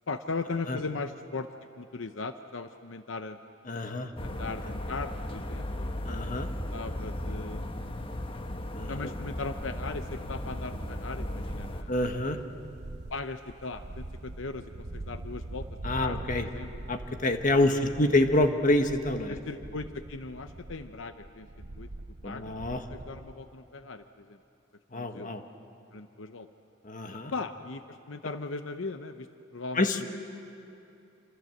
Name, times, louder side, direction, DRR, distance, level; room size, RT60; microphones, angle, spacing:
voice 1, 0.1-1.5 1.8-3.4 4.2-5.9 6.7-8.2 8.9-11.9 13.1-16.7 17.8-17.9 19.3-21.5 21.8-21.9 22.2-22.6 22.9-24.4 24.9-25.3 25.9-26.5 27.3-29.9, left 3 dB, 80° left, 9 dB, 0.8 m, -38 dB
voice 2, 3.7-4.1 6.0-6.5 8.7-9.1 11.9-12.4 15.8-16.4 16.9-19.3 22.2-22.8 24.9-25.4 26.8-27.3 29.7-30.0, left 1 dB, 45° left, 6 dB, 1.5 m, -27 dB
sound 1, 4.2-11.8, left 1 dB, 30° left, 1.1 m, -36 dB
sound 2, 9.7-23.4, right 2 dB, 60° right, 0.8 m, -43 dB
27.5 x 26.5 x 7.9 m, 2.7 s
head